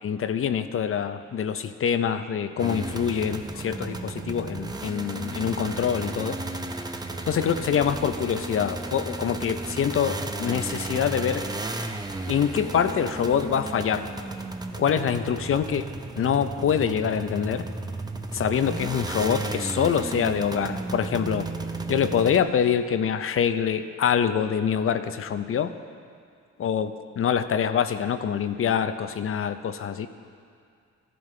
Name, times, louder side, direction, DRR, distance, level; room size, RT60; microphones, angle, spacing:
voice 1, 0.0-6.4 7.3-11.4 12.3-14.1 14.8-15.8 16.2-17.6 18.3-21.5 21.9-25.7 26.6-30.1, left 8 dB, 45° left, 11 dB, 0.6 m, -25 dB
sound 1, 2.6-22.4, right 2 dB, 15° right, 0.6 m, -34 dB
15.0 x 11.0 x 3.3 m, 2.3 s
cardioid pair, 90°, 30 cm